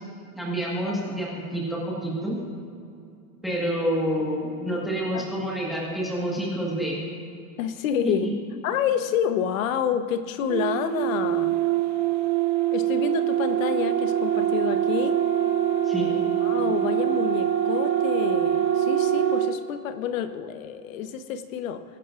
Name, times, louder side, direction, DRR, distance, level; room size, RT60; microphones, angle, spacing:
voice 1, 0.4-2.4 3.4-7.0 15.8-16.1, equal, ahead, -5 dB, 1.5 m, -28 dB
voice 2, 7.6-8.3 8.6-11.6 12.7-15.2 16.1-21.8, left 8 dB, 60° left, 10 dB, 1.0 m, -28 dB
sound 1, 10.5-19.6, right 11 dB, 55° right, 1.4 m, -24 dB
22.5 x 10.5 x 2.5 m, 2.4 s
supercardioid pair, 170°, 45 cm